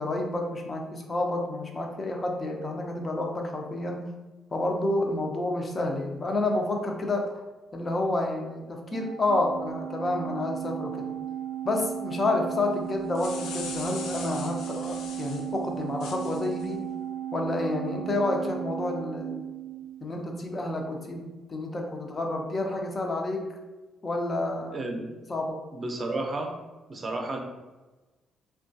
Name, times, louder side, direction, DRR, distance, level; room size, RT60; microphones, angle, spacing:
voice 1, 0.0-4.1 4.5-7.4 7.7-11.1 11.6-16.8 17.3-19.5 20.0-23.5 24.0-24.9 25.3-25.6, left 2 dB, 30° left, 2 dB, 0.5 m, -29 dB
Organ, 8.9-20.2, right 10 dB, 85° right, 0.3 m, -35 dB
sound 1, 12.9-15.5 16.0-16.7, left 5 dB, 85° left, 0.4 m, -41 dB
voice 2, 24.7-25.0 25.7-26.6 26.9-27.4, right 2 dB, 35° right, 2 dB, 0.6 m, -32 dB
3.6 x 2.2 x 2.6 m, 1.2 s
cardioid pair, 90°, 0 cm